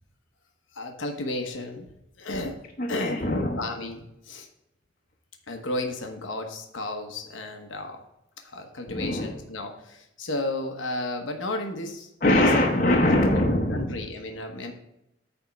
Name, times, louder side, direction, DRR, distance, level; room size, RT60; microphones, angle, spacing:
voice 1, 0.7-1.9 2.2-2.6 2.9-3.2 3.6-4.5 5.5-8.0 8.4-12.4 12.9-13.3 13.7-14.7, left 2 dB, 85° left, 3 dB, 1.1 m, -33 dB
voice 2, 2.8-3.6 8.9-9.4 12.2-14.0, left 1 dB, 45° left, -1 dB, 0.8 m, -22 dB
9.2 x 3.5 x 5.9 m, 0.84 s
head